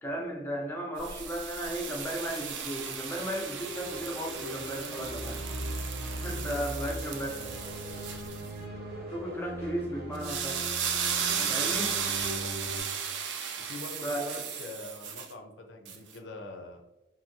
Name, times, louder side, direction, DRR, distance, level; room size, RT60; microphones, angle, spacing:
voice 1, 0.0-5.4 6.2-7.4 9.1-10.6 11.5-11.9 14.0-14.2, equal, 10° left, -1 dB, 0.5 m, -35 dB
sound 1, 1.0-8.5 10.1-15.3 15.9-16.0, right 7 dB, 80° right, 0.4 m, -35 dB
Singing, 3.6-10.3, equal, 20° right, 0.7 m, -47 dB
sound 2, 4.2-12.8, equal, 60° right, 0.8 m, -39 dB
voice 2, 13.6-16.8, left 2 dB, 90° left, 4 dB, 0.5 m, -44 dB
2.7 x 2.6 x 2.6 m, 1.0 s
head